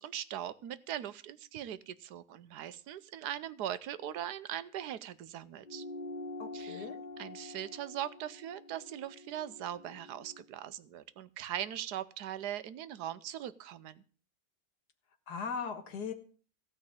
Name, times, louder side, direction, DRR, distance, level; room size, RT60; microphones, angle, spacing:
voice 1, 0.0-5.8 6.5-6.9 7.2-14.0, right 11 dB, 80° right, 15 dB, 1.3 m, -40 dB
sound 1, 5.6-10.4, left 2 dB, 40° left, 0.8 m, -46 dB
voice 2, 6.4-7.0 15.3-16.1, left 6 dB, 85° left, 8 dB, 2.0 m, -38 dB
15.5 x 5.3 x 8.7 m, 0.41 s
omnidirectional pair, 1.7 m